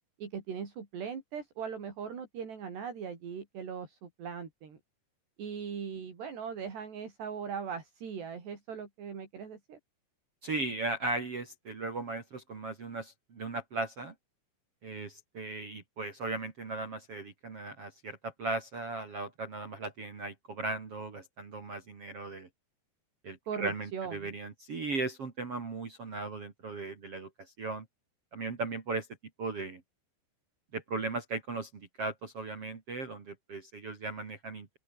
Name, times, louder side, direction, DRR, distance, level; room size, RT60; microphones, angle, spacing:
voice 1, 0.2-4.8 5.4-9.8 23.5-24.3, right 7 dB, 70° right, 6.6 m, -39 dB
voice 2, 10.4-14.1 14.8-22.5 23.2-27.8 28.3-29.1 29.4-29.8 30.7-34.8, right 2 dB, 35° right, 3.2 m, -37 dB
open air
omnidirectional pair, 5.1 m